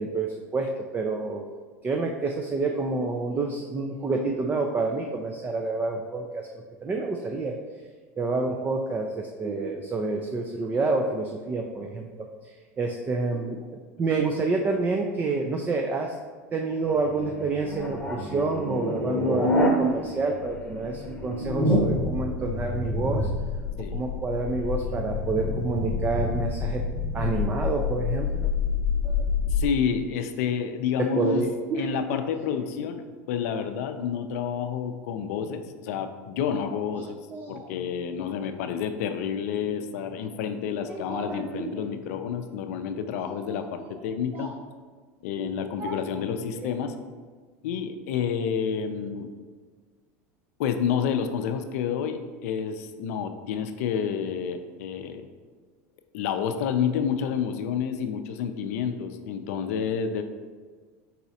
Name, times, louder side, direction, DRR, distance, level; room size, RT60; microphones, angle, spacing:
voice 1, 0.0-1.4 1.8-6.5 6.8-7.6 8.2-12.3 12.8-16.2 16.5-23.3 23.9-26.9 27.1-28.5 29.0-29.2 31.0-31.9 37.3-37.6 38.2-38.4 40.9-41.7 43.2-43.9 44.3-44.5 45.4-45.9, right 3 dB, 20° right, 2 dB, 0.4 m, -28 dB
sound 1, 16.9-19.7 20.0-29.6, left 3 dB, 15° left, 0.9 m, -28 dB
voice 2, 29.5-31.4 31.7-37.2 37.5-44.5 45.2-47.0 47.6-49.3 50.6-55.3 56.1-60.2, left 7 dB, 75° left, 7 dB, 0.5 m, -29 dB
4.7 x 4.1 x 2.7 m, 1.5 s
supercardioid pair, 115°, 8 cm